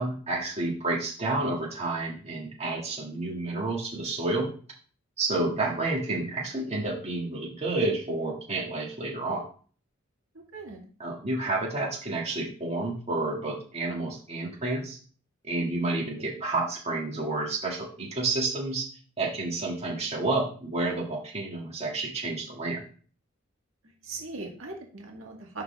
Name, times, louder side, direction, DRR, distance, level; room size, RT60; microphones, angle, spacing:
voice 1, 0.0-4.5 5.2-9.4 11.0-15.0 15.4-18.9 19.2-22.8, right 2 dB, 30° right, -3 dB, 1.9 m, -30 dB
voice 2, 24.0-25.6, right 3 dB, 80° right, 0 dB, 1.9 m, -39 dB
11.0 x 3.9 x 3.4 m, 0.42 s
head